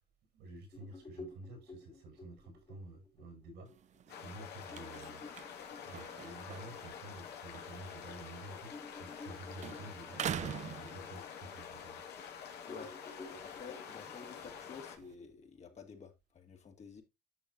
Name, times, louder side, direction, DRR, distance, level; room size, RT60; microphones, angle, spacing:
voice 1, 0.3-5.5 5.8-12.0, right 2 dB, 85° right, 5.6 m, -51 dB
sound 1, 0.7-7.8 8.2-8.3 8.7-12.3 12.7-15.8, left 2 dB, 25° left, 2.1 m, -53 dB
sound 2, 3.7-9.3 9.6-11.6 12.1-15.1, right 9 dB, 45° right, 0.5 m, -46 dB
sound 3, 4.1-15.0, left 8 dB, 75° left, 2.1 m, -48 dB
voice 2, 12.7-17.0, left 6 dB, 40° left, 2.3 m, -52 dB
11.0 x 6.5 x 2.6 m
cardioid pair, 110°, 17 cm